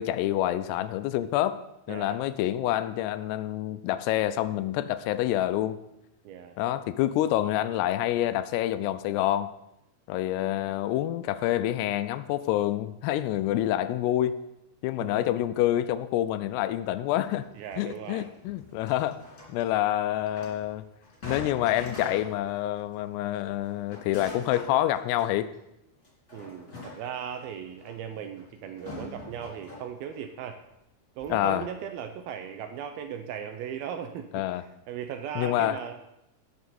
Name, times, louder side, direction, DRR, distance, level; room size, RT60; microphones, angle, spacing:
voice 1, 0.0-1.6 1.9-5.8 6.6-9.5 10.1-14.4 14.8-17.5 17.8-19.2 19.5-20.8 21.2-25.5 31.3-31.7 34.3-34.6 35.4-35.8, left 13 dB, 85° left, 13 dB, 2.6 m, -27 dB
voice 2, 1.9-2.2 6.3-6.6 15.0-15.3 17.5-18.3 26.3-30.6 31.2-36.2, right 8 dB, 80° right, 7 dB, 2.3 m, -38 dB
sound 1, 17.2-22.6 22.9-23.0 23.4-25.5 26.0-30.3 30.7-30.8 31.2-31.4, left 2 dB, 20° left, 2.7 m, -44 dB
17.0 x 6.4 x 4.2 m, 0.87 s
omnidirectional pair, 4.8 m